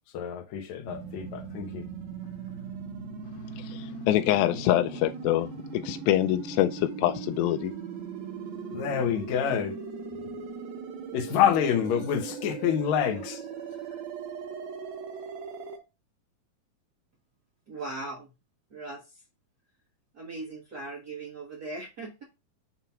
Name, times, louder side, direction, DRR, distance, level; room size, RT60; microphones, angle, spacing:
voice 1, 0.1-1.9 8.7-9.8 11.1-13.4, left 9 dB, 65° left, 2.0 m, -27 dB
sound 1, 0.9-15.8, right 5 dB, 85° right, 2.9 m, -39 dB
voice 2, 3.6-7.7, left 14 dB, 90° left, 2.4 m, -25 dB
voice 3, 17.7-18.3 18.7-19.2 20.1-22.2, right 2 dB, 70° right, 0.9 m, -39 dB
7.1 x 2.9 x 5.5 m
omnidirectional pair, 4.1 m